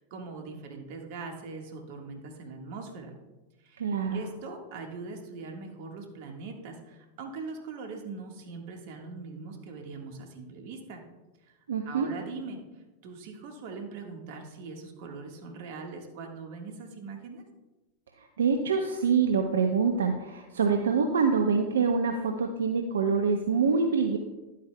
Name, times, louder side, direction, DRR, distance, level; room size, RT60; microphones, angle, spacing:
voice 1, 0.0-3.1 3.6-3.8 4.1-11.0 11.4-11.6 11.8-17.4, right 4 dB, 60° right, 3 dB, 1.5 m, -41 dB
voice 2, 3.8-4.2 11.7-12.1 18.2-24.2, right 5 dB, 80° right, 4 dB, 0.7 m, -25 dB
11.0 x 8.4 x 2.2 m, 1.1 s
hypercardioid pair, 95°, 0 cm